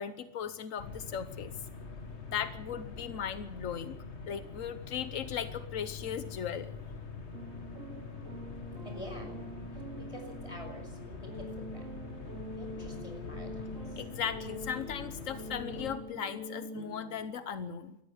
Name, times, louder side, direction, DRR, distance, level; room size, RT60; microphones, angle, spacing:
voice 1, 0.0-1.5 2.3-4.0 4.3-6.7 14.0-18.0, left 8 dB, 90° left, 12 dB, 1.3 m, -37 dB
sound 1, 0.8-16.0, left 4 dB, 60° left, 2.0 m, -44 dB
sound 2, 7.3-17.2, equal, 85° right, 3.4 m, -44 dB
voice 2, 8.8-9.3 9.7-11.9 12.6-14.0, equal, 25° left, 4 dB, 5.8 m, -48 dB
19.0 x 14.0 x 9.7 m, 0.89 s
omnidirectional pair, 1.3 m